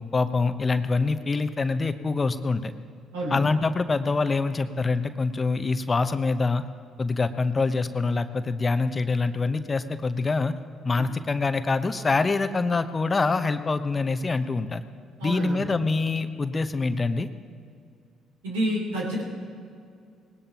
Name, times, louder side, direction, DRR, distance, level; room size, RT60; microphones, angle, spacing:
voice 1, 0.0-2.7 3.3-6.6 7.0-10.5 10.8-14.8 15.2-17.3, left 3 dB, 30° left, 10 dB, 0.9 m, -25 dB
voice 2, 15.2-15.6 18.4-19.2, right 1 dB, 85° right, -3 dB, 3.4 m, -29 dB
19.5 x 18.0 x 3.0 m, 2.3 s
hypercardioid pair, 55°, 0 cm